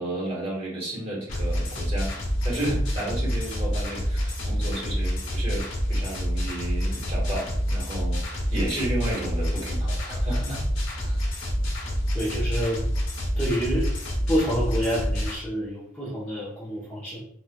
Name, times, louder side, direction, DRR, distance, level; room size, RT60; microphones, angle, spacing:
voice 1, 0.0-2.1 2.4-10.6 10.9-11.2, right 1 dB, 30° right, -4 dB, 1.3 m, -32 dB
sound 1, 1.3-15.3, equal, 80° left, 0.9 m, -27 dB
voice 2, 12.1-12.8 13.4-13.9 14.3-17.2, equal, 5° left, -9 dB, 0.7 m, -28 dB
4.2 x 2.4 x 2.2 m, 0.65 s
head